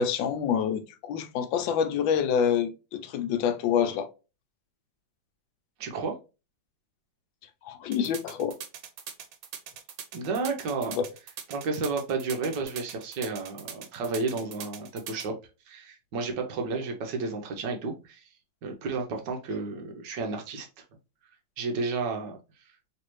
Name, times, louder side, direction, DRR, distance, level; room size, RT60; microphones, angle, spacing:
voice 1, 0.0-4.1 7.6-8.5 10.9-11.0, left 7 dB, 85° left, 1.3 m, -27 dB
voice 2, 5.8-6.1 10.1-11.0 11.5-15.3 15.7-18.2 18.6-20.7 21.6-22.4, right 4 dB, 70° right, 1.4 m, -32 dB
sound 1, 7.9-15.3, right 8 dB, 85° right, 1.5 m, -41 dB
3.3 x 3.3 x 3.0 m
omnidirectional pair, 2.1 m